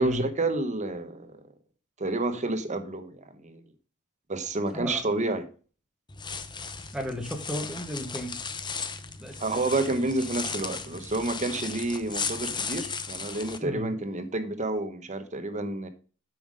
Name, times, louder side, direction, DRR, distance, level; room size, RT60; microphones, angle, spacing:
voice 1, 0.0-1.4 2.0-3.6 4.3-5.5 9.4-15.9, right 2 dB, 35° right, 0.9 m, -29 dB
voice 2, 4.7-5.0 6.9-8.4 9.2-9.7 13.6-13.9, equal, 5° right, 1.1 m, -34 dB
sound 1, 6.1-13.6, left 5 dB, 20° left, 0.8 m, -36 dB
9.1 x 5.8 x 5.1 m
head